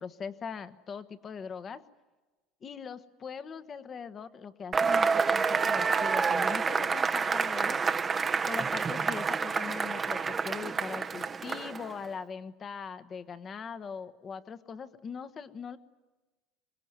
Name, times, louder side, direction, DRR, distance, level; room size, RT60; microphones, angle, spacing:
voice 1, 0.0-1.8 2.6-7.8 8.5-15.8, left 6 dB, 30° left, 12 dB, 1.3 m, -41 dB
Cheering / Applause / Crowd, 4.7-12.0, right 5 dB, 25° right, 0.9 m, -28 dB
25.0 x 22.0 x 9.7 m, 1.2 s
supercardioid pair, 125°, 0 cm